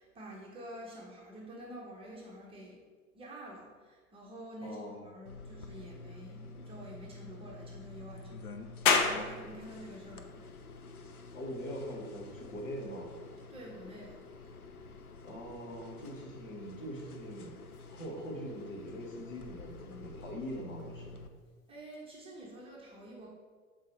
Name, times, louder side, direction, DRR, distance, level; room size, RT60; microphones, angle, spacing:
voice 1, 0.0-2.8 3.1-10.4 13.5-14.3 21.7-23.3, right 1 dB, 15° right, -3 dB, 0.8 m, -48 dB
voice 2, 4.6-5.0 11.3-13.2 15.2-17.5 17.9-21.2, equal, 60° left, -2 dB, 1.7 m, -42 dB
sound 1, 5.3-21.3, left 3 dB, 85° left, 0.6 m, -49 dB
sound 2, 8.9-22.0, left 5 dB, 40° left, 0.6 m, -39 dB
7.4 x 4.1 x 3.2 m, 1.5 s
figure-of-eight pair, 100°, 43 cm